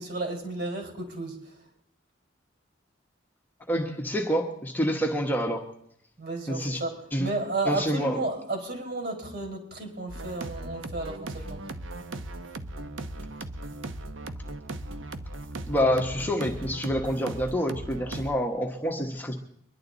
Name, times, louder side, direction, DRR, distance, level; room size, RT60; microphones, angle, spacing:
voice 1, 0.0-1.6 6.2-11.6, right 2 dB, 55° right, 1 dB, 4.9 m, -33 dB
voice 2, 3.7-5.6 6.5-6.8 7.1-7.3 7.7-8.2 15.7-19.3, equal, 10° left, 0 dB, 1.3 m, -27 dB
sound 1, 10.1-18.3, right 2 dB, 85° right, 0.9 m, -38 dB
24.0 x 11.5 x 4.0 m, 0.73 s
head